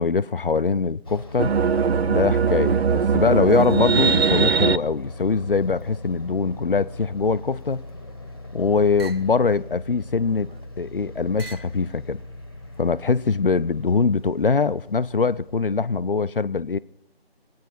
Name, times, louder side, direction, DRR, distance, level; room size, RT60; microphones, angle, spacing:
voice 1, 0.0-1.5 2.1-7.8 8.5-10.5 10.8-12.2 12.8-16.8, left 4 dB, 60° left, 0.5 m, -22 dB
sound 1, 1.0-16.1, left 2 dB, 20° left, 1.1 m, -40 dB
sound 2, 1.4-4.8, right 6 dB, 80° right, 0.5 m, -20 dB
sound 3, 8.0-8.4 9.0-9.3 10.1-10.7 11.4-11.8 12.6-13.2, right 4 dB, 65° right, 1.1 m, -44 dB
26.0 x 9.4 x 4.2 m
figure-of-eight pair, 170°, 32 cm